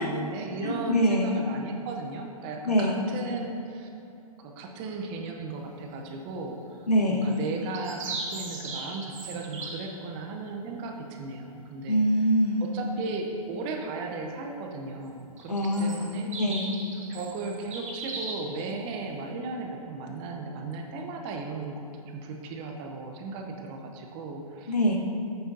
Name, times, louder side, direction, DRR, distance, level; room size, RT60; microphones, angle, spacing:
voice 1, 0.0-3.9 4.4-12.0 12.6-16.3 17.1-24.7, right 3 dB, 25° right, 2 dB, 0.7 m, -36 dB
voice 2, 0.6-1.3 2.6-2.9 6.9-7.3 11.9-12.8 15.5-16.1 16.4-16.7 24.7-25.0, equal, 90° left, 0 dB, 1.3 m, -24 dB
sound 1, 7.3-9.9 15.4-18.5, right 3 dB, 55° right, 1.6 m, -37 dB
8.6 x 7.9 x 2.7 m, 2.8 s
hypercardioid pair, 130°, 20 cm